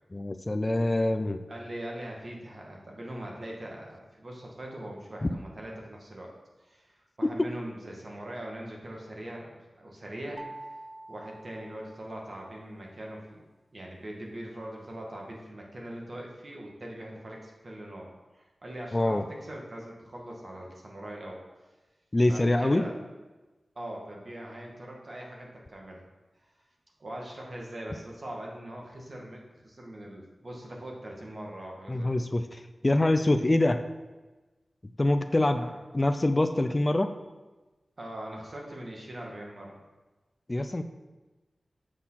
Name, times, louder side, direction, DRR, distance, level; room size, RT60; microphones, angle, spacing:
voice 1, 0.1-1.4 5.2-5.3 7.4-7.5 18.9-19.2 22.1-22.9 31.9-33.8 35.0-35.7 35.9-37.1 40.5-40.8, left 1 dB, 30° left, 9 dB, 0.5 m, -25 dB
voice 2, 1.5-6.3 6.6-10.4 11.1-13.4 13.7-21.4 22.3-22.9 23.8-26.0 26.4-26.5 27.0-32.3 35.5-35.7 38.0-39.8, right 1 dB, 55° right, -1 dB, 2.0 m, -41 dB
sound 1, 10.4-12.5, right 2 dB, 15° right, 0.6 m, -46 dB
7.3 x 6.5 x 5.8 m, 1.2 s
wide cardioid pair, 60°, 0 cm